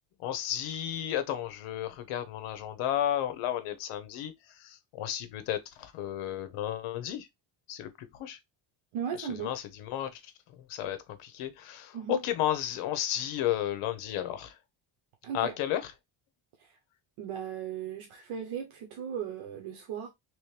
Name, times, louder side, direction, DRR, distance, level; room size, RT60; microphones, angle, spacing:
voice 1, 0.2-7.3 7.7-8.4 9.2-10.3 10.7-14.6 15.3-15.9, left 11 dB, 85° left, 0.9 m, -33 dB
voice 2, 8.9-9.5 11.9-12.2 15.2-15.5 16.6-16.7 17.2-20.1, right 8 dB, 75° right, 1.0 m, -37 dB
3.1 x 3.0 x 3.2 m
cardioid pair, 145°, 50 cm